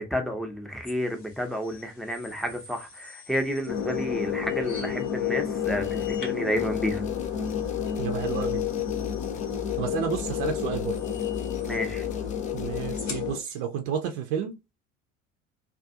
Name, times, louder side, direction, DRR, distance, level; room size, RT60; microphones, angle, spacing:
voice 1, 0.0-7.0 11.6-12.0, equal, ahead, 0.7 m, -31 dB
sound 1, 0.8-13.6, left 4 dB, 75° left, 1.0 m, -48 dB
sound 2, 3.7-13.4, left 9 dB, 40° left, 0.7 m, -30 dB
sound 3, 5.6-6.2 6.6-13.0, left 6 dB, 20° left, 0.3 m, -40 dB
voice 2, 8.0-8.7 9.8-11.0 12.5-14.7, right 8 dB, 60° right, 0.6 m, -31 dB
2.4 x 2.3 x 2.6 m
figure-of-eight pair, 60°, 37 cm